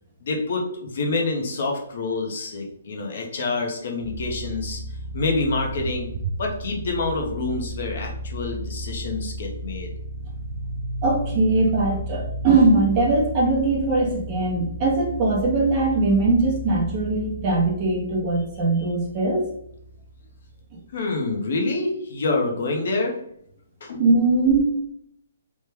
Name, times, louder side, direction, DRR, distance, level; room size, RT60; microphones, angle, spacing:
voice 1, 0.2-4.8 5.1-6.1 6.4-9.9 20.9-23.2 23.8-24.1, left 3 dB, 55° left, 1 dB, 0.7 m, -27 dB
sound 1, 4.0-20.7, right 1 dB, 50° right, 0.4 m, -34 dB
voice 2, 11.0-19.4 24.0-24.6, right 3 dB, 25° right, -2 dB, 0.7 m, -21 dB
3.1 x 2.1 x 3.3 m, 0.70 s
hypercardioid pair, 170°, 0 cm